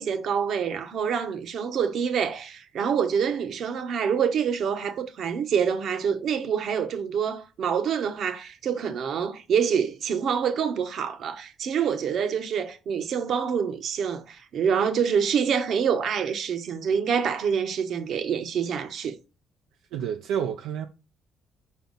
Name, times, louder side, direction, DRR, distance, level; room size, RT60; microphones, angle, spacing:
voice 1, 0.0-19.2, right 7 dB, 65° right, 1.0 m, -26 dB
voice 2, 19.9-20.9, right 8 dB, 90° right, 0.5 m, -29 dB
5.6 x 4.4 x 4.0 m
cardioid pair, 85°, 0 cm